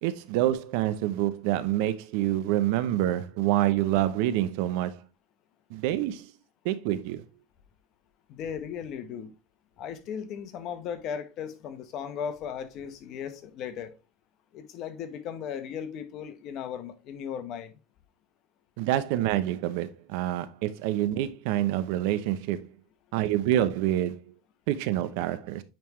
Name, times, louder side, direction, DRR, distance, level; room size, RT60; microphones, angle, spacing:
voice 1, 0.0-5.0 5.7-6.3 6.6-7.2 18.8-22.7 23.1-24.2 24.7-25.6, right 13 dB, 70° right, 0.7 m, -27 dB
voice 2, 8.3-9.3 9.8-13.9 14.5-17.7, left 8 dB, 50° left, 1.1 m, -36 dB
8.8 x 3.5 x 3.1 m
supercardioid pair, 120°, 0 cm